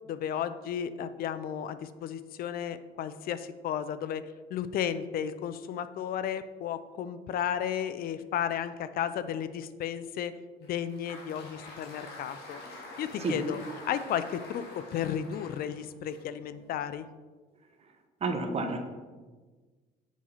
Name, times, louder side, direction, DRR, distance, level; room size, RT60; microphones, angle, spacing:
voice 1, 0.1-4.2 4.5-10.4 10.6-12.6 13.0-13.6 13.9-17.1, left 9 dB, 60° left, 13 dB, 0.4 m, -33 dB
Applause, 10.6-16.9, left 2 dB, 80° left, 2.1 m, -47 dB
voice 2, 18.2-18.8, right 3 dB, 40° right, 4 dB, 1.1 m, -29 dB
7.3 x 4.2 x 5.6 m, 1.4 s
cardioid pair, 110°, 17 cm